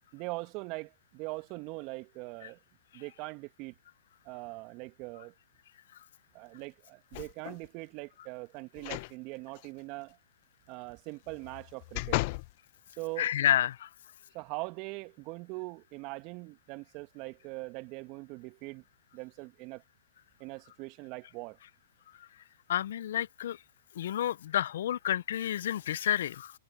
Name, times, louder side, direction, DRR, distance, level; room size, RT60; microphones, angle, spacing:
voice 1, 0.1-2.6 2.9-3.7 4.2-5.3 6.3-10.2 10.7-12.2 13.0-13.3 14.3-18.8 19.1-19.8 20.4-21.6, right 25 dB, 40° right, 2.3 m, -41 dB
sound 1, 7.1-7.7 8.8-9.1 9.6-9.7 11.3-12.5 13.1-13.2, left 24 dB, 45° left, 1.2 m, -35 dB
voice 2, 13.2-13.9 22.7-23.6 24.0-26.5, left 11 dB, 65° left, 0.8 m, -29 dB
hypercardioid pair, 120°, 0 cm